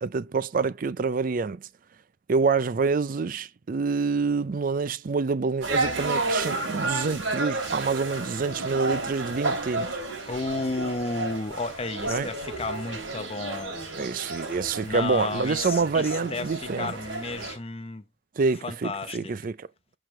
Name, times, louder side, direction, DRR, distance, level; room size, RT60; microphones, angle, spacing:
voice 1, 0.0-1.7 2.3-10.0 12.1-12.3 13.9-16.9 18.4-19.7, right 4 dB, 45° right, 0.4 m, -27 dB
sound 1, 5.6-17.6, right 2 dB, 85° right, 2.8 m, -32 dB
voice 2, 10.3-13.8 14.8-18.0 18.6-19.3, left 3 dB, 30° left, 0.8 m, -32 dB
7.6 x 4.9 x 3.1 m
head